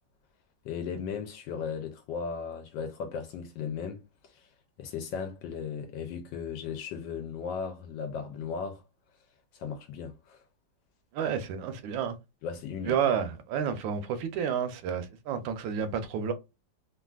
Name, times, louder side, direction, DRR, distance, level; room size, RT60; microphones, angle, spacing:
voice 1, 0.6-4.5 4.8-8.8 9.5-10.4 12.4-13.0, left 6 dB, 75° left, 1.2 m, -36 dB
voice 2, 11.1-12.2 12.9-16.3, right 7 dB, 80° right, 1.3 m, -30 dB
3.3 x 2.4 x 2.3 m
omnidirectional pair, 2.1 m